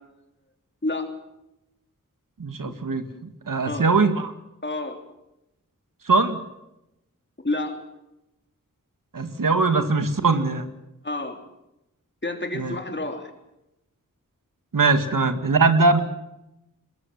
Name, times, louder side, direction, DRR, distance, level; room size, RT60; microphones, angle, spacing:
voice 1, 2.4-3.0 3.5-4.3 6.1-6.4 9.1-10.7 12.5-12.8 14.7-16.0, right 3 dB, 80° right, 8 dB, 2.0 m, -21 dB
voice 2, 4.6-5.0 7.4-7.8 11.0-11.4 12.2-13.3, left 2 dB, 35° left, 5 dB, 3.5 m, -29 dB
22.5 x 21.5 x 7.5 m, 0.89 s
wide cardioid pair, 75°, 32 cm